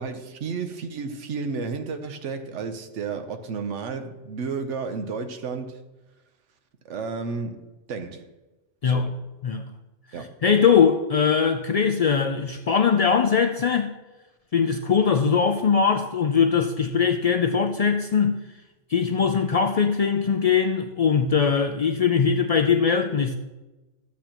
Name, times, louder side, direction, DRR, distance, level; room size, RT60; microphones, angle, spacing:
voice 1, 0.0-5.8 6.8-8.3 8.8-9.2 10.1-10.3, right 4 dB, 90° right, 1.2 m, -32 dB
voice 2, 10.4-13.9 14.5-18.4 18.9-23.4, left 6 dB, 70° left, 0.3 m, -21 dB
12.5 x 8.2 x 3.0 m
omnidirectional pair, 1.2 m